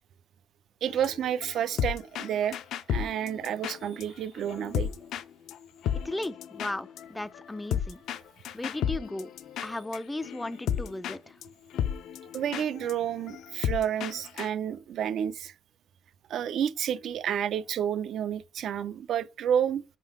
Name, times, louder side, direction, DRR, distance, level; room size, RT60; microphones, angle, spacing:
voice 1, 0.8-2.6 2.9-4.9 12.3-15.5 16.3-19.8, right 9 dB, 70° right, 0.4 m, -30 dB
sound 1, 0.9-4.0 4.4-5.2 5.5-5.6 5.8-11.2 11.4-11.5 11.7-14.5, left 9 dB, 80° left, 0.5 m, -33 dB
voice 2, 6.0-8.0 8.5-9.3 9.6-11.4, left 2 dB, 15° left, 0.4 m, -36 dB
5.3 x 3.8 x 4.7 m
cardioid pair, 90°, 0 cm